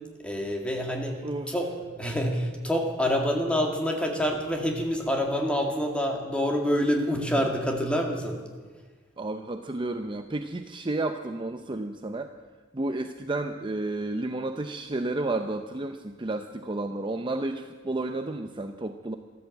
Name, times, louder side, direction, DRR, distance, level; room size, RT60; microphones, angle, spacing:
voice 1, 0.2-1.2 1.5-1.7 2.0-8.4, equal, 5° left, 1 dB, 2.1 m, -27 dB
voice 2, 1.2-1.5 9.2-12.3 12.7-19.2, right 2 dB, 25° right, 7 dB, 0.6 m, -31 dB
13.5 x 13.5 x 7.8 m, 1.4 s
head